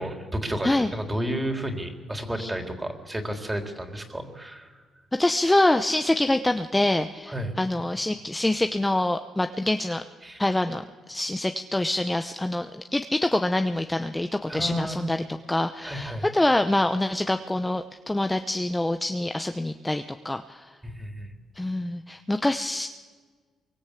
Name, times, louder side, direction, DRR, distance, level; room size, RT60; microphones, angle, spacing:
voice 1, 0.0-4.8 7.3-7.5 10.2-10.4 14.5-15.0 15.8-16.3 20.8-21.3, equal, 15° right, 4 dB, 3.7 m, -32 dB
voice 2, 5.2-10.0 10.4-20.7 21.6-22.9, left 1 dB, 10° left, 7 dB, 0.9 m, -25 dB
24.5 x 23.5 x 8.4 m, 1.5 s
cardioid pair, 90°, 0 cm